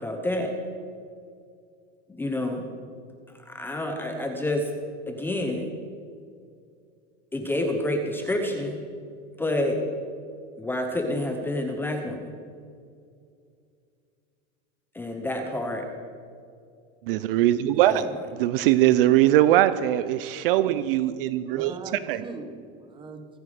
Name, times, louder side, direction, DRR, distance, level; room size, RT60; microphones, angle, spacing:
voice 1, 0.0-0.5 2.1-2.6 3.5-4.7 5.1-5.7 7.3-8.8 9.4-9.8 10.6-12.3 14.9-15.9 17.8-18.1, left 1 dB, 5° left, 4 dB, 0.7 m, -28 dB
voice 2, 17.0-18.1 18.3-21.7 22.1-22.2, right 13 dB, 50° right, 14 dB, 0.5 m, -21 dB
voice 3, 21.4-23.4, right 4 dB, 15° right, 6 dB, 1.1 m, -40 dB
24.5 x 9.2 x 5.0 m, 2.3 s
supercardioid pair, 170°, 36 cm